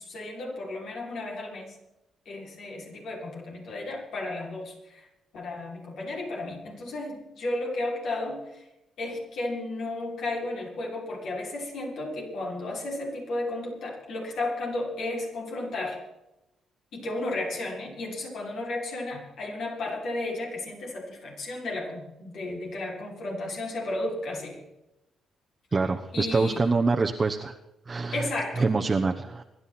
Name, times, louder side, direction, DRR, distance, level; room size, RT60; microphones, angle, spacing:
voice 1, 0.0-1.8 2.3-5.1 5.3-8.7 9.0-16.0 16.9-24.6 25.8-26.7 28.1-28.6, left 2 dB, 70° left, -2 dB, 5.9 m, -33 dB
voice 2, 25.7-27.6 27.9-28.2 28.6-29.4, right 3 dB, 30° right, 3 dB, 1.1 m, -25 dB
26.0 x 11.0 x 4.3 m, 0.94 s
cardioid pair, 90°, 0 cm